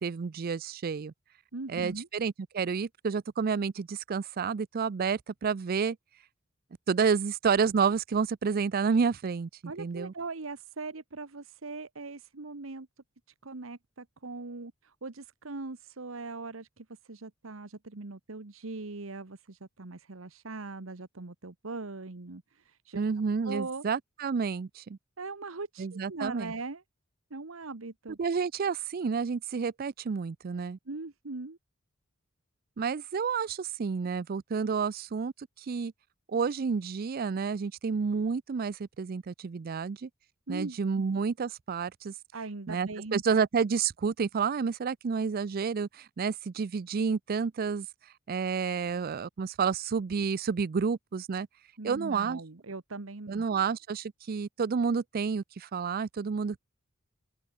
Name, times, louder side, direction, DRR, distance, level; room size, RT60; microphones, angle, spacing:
voice 1, 0.0-1.1 1.7-6.0 6.9-9.5 9.8-10.1 22.9-25.0 25.8-26.5 28.2-30.8 32.8-35.9 36.3-40.1 40.5-42.1 42.7-47.9 48.3-51.5 51.8-52.4 53.3-56.6, right 5 dB, 45° right, 0.4 m, -30 dB
voice 2, 1.5-2.1 9.6-12.9 13.4-23.0 23.4-23.8 25.2-26.8 27.3-28.2 30.9-31.6 40.5-41.0 42.3-43.5 51.8-53.6, right 3 dB, 90° right, 1.2 m, -40 dB
open air
head